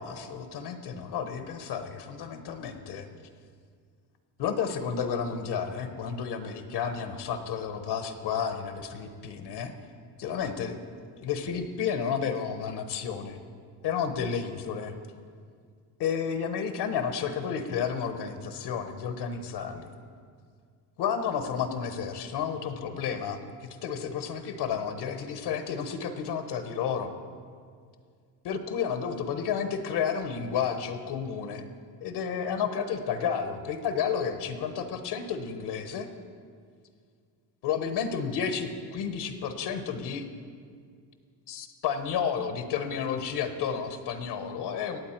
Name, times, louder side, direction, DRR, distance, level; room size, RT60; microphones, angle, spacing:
voice 1, 0.0-3.1 4.4-9.7 10.2-13.4 13.8-14.9 16.0-19.9 21.0-27.1 28.4-31.6 32.0-36.1 37.6-40.3 41.5-45.0, left 7 dB, 70° left, 8 dB, 1.0 m, -31 dB
17.0 x 8.4 x 4.4 m, 2.1 s
cardioid pair, 120°, 41 cm